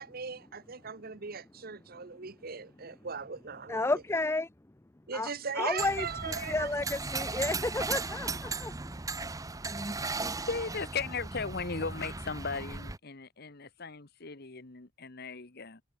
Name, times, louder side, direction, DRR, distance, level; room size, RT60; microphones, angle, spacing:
voice 1, 0.0-3.8 5.1-6.7, right 5 dB, 55° right, 1.1 m, -39 dB
voice 2, 3.7-4.5 5.1-8.8, left 2 dB, 15° left, 0.5 m, -32 dB
sound 1, 5.8-13.0, right 3 dB, 20° right, 0.9 m, -36 dB
voice 3, 10.5-15.8, left 4 dB, 55° left, 1.5 m, -37 dB
head